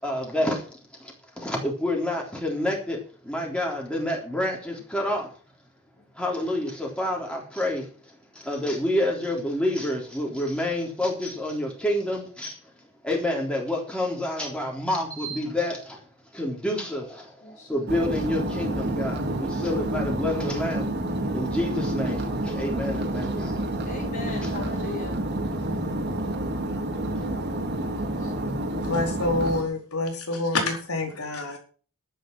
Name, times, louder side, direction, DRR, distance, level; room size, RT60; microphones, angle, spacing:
voice 1, 0.0-5.3 6.1-16.1 16.3-23.7 24.4-24.5 25.7-25.8, left 1 dB, 5° left, 3.7 m, -29 dB
sound 1, 17.9-29.6, right 1 dB, 50° right, 2.9 m, -29 dB
voice 2, 23.8-25.2 26.9-28.9, left 3 dB, 45° left, 3.2 m, -40 dB
voice 3, 28.8-31.6, left 2 dB, 90° left, 4.3 m, -27 dB
11.5 x 10.0 x 6.1 m
head